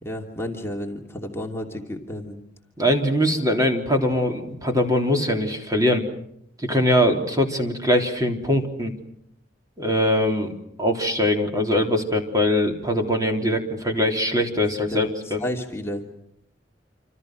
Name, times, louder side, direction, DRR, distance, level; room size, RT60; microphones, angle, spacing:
voice 1, 0.0-2.4 14.9-16.0, left 1 dB, 15° left, 1 dB, 2.8 m, -32 dB
voice 2, 2.8-6.0 6.6-8.9 9.8-10.5 10.8-15.4, left 1 dB, 20° right, 3 dB, 3.7 m, -22 dB
27.5 x 27.0 x 6.3 m, 0.74 s
head